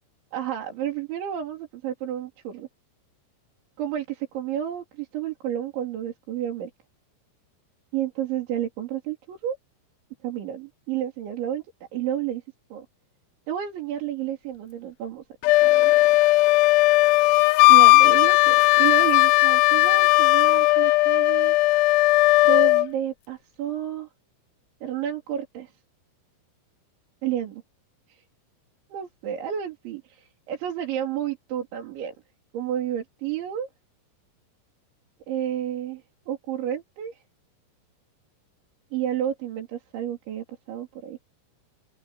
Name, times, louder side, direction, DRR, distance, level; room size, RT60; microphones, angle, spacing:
voice 1, 0.3-2.7 3.8-6.7 7.9-9.6 10.2-11.6 11.9-12.4 12.7-12.9 13.5-15.2 15.6-15.9 17.7-21.6 22.4-24.1 24.8-25.7 27.2-27.6 28.1-28.2 28.9-32.1 32.5-33.7 35.3-37.2 38.9-41.2, right 10 dB, 65° right, 5.6 m, -31 dB
Wind instrument woodwind instrument, 15.4-22.9, left 21 dB, 80° left, 2.7 m, -17 dB
open air
omnidirectional pair, 5.9 m